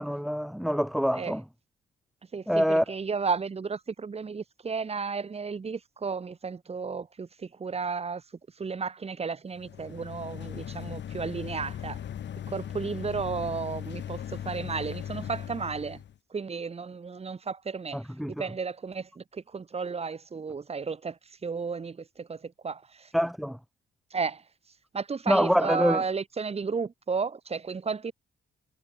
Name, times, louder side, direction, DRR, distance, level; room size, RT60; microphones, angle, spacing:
voice 1, 0.0-1.4 2.5-2.8 17.9-18.3 23.1-23.6 25.3-26.0, equal, ahead, 0.4 m, -25 dB
voice 2, 2.3-8.2 8.6-12.0 12.5-16.0 16.3-18.0 18.3-23.1 24.1-24.4 24.9-28.1, right 5 dB, 30° right, 1.7 m, -33 dB
sound 1, 9.5-16.2, left 10 dB, 65° left, 4.7 m, -38 dB
cardioid pair, 90°, 20 cm